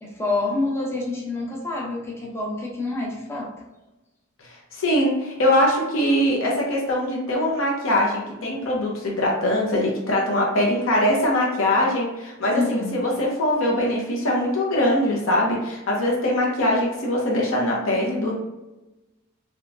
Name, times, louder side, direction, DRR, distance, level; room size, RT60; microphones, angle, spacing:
voice 1, 0.0-3.5 8.5-8.6 12.5-13.0, left 2 dB, 15° left, -3 dB, 0.6 m, -27 dB
voice 2, 4.7-18.3, left 1 dB, 80° left, -2 dB, 0.8 m, -22 dB
3.3 x 2.9 x 2.5 m, 1.0 s
head